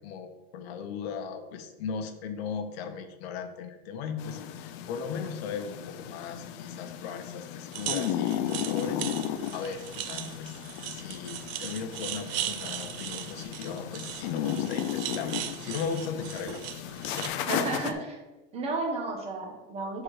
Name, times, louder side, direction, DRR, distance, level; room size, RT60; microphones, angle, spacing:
voice 1, 0.0-9.1 9.5-16.6 17.0-17.3 17.7-17.9, left 6 dB, 80° left, 7 dB, 0.9 m, -37 dB
sound 1, 4.2-17.9, left 10 dB, 60° left, 0.5 m, -35 dB
sound 2, 7.7-17.3, right 12 dB, 65° right, 0.6 m, -38 dB
voice 2, 17.4-18.2 18.5-20.0, right 3 dB, 20° right, 1 dB, 1.1 m, -32 dB
6.2 x 3.8 x 4.7 m, 1.1 s
cardioid pair, 165°, 31 cm